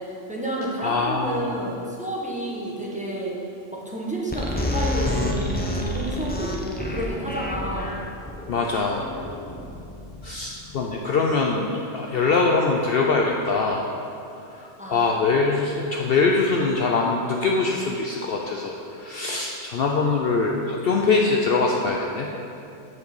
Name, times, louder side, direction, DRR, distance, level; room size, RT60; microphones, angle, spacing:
voice 1, 0.0-3.3 3.7-7.9 14.8-15.1, right 1 dB, 5° right, -4 dB, 1.0 m, -30 dB
voice 2, 0.8-1.6 8.5-9.1 10.2-13.9 14.4-22.3, left 4 dB, 60° left, 0 dB, 0.7 m, -23 dB
sound 1, 4.3-10.7, left 1 dB, 10° left, 0.6 m, -29 dB
6.5 x 5.2 x 7.1 m, 2.7 s
omnidirectional pair, 1.3 m